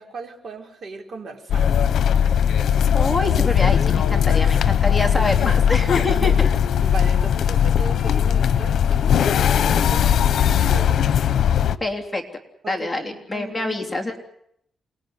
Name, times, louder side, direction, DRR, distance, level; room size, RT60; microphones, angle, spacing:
voice 1, 0.0-2.0 5.9-6.5 6.8-11.0 12.6-13.8, right 3 dB, 45° right, 2 dB, 5.1 m, -37 dB
sound 1, 1.5-11.8, left 8 dB, 75° left, 1.2 m, -19 dB
voice 2, 2.9-6.5 11.8-12.2 12.7-14.2, left 2 dB, 10° left, 2 dB, 3.4 m, -25 dB
28.5 x 21.0 x 9.7 m, 0.75 s
wide cardioid pair, 145°, 0 cm